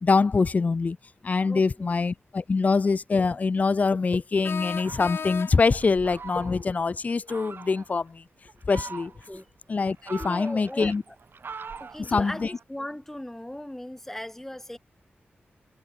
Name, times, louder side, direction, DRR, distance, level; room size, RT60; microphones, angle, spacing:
voice 1, 0.0-1.0 1.2-8.2 8.7-9.1 9.7-11.0 12.0-12.5, left 4 dB, 40° left, 0.6 m, -24 dB
voice 2, 1.5-1.9 9.3-9.5 10.2-11.2 11.8-14.8, left 1 dB, 10° left, 2.6 m, -38 dB
sound 1, 2.1-2.2 4.4-5.9, left 6 dB, 75° left, 2.3 m, -35 dB
Fowl, 4.7-6.8 7.3-7.9 8.5-9.4 9.8-12.6, right 5 dB, 65° right, 6.9 m, -43 dB
wide cardioid pair, 130°, 4 cm